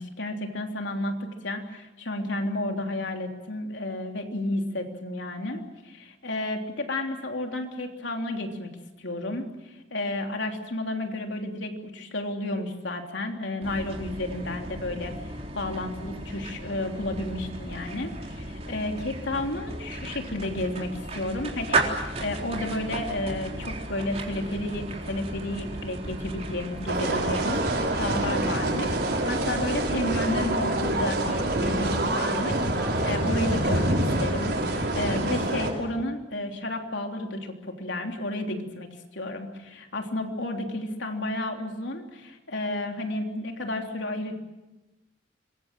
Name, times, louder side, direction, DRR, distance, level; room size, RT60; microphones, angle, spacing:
voice 1, 0.0-8.7 9.0-44.3, left 1 dB, 80° left, 3 dB, 3.4 m, -32 dB
sound 1, 13.6-32.2, right 2 dB, 35° right, 3.9 m, -35 dB
sound 2, 26.9-35.7, right 1 dB, 60° right, 6.0 m, -26 dB
26.5 x 22.5 x 7.7 m, 1.1 s
head